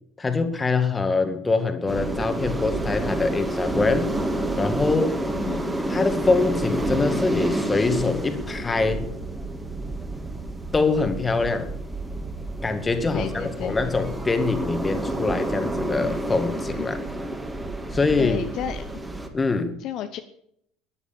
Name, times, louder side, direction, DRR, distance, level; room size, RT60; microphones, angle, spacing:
voice 1, 0.2-4.1 4.6-5.2 5.9-9.1 10.7-11.7 12.6-17.0 17.9-18.4 19.3-19.8, left 3 dB, 20° left, 9 dB, 2.1 m, -24 dB
sound 1, 1.9-19.3, right 2 dB, 10° right, 2.4 m, -29 dB
voice 2, 5.4-5.8 13.1-13.8 16.8-16.9 18.2-18.8 19.8-20.2, left 10 dB, 50° left, 8 dB, 1.0 m, -32 dB
13.5 x 11.0 x 7.1 m, 0.70 s
figure-of-eight pair, 65°, 0 cm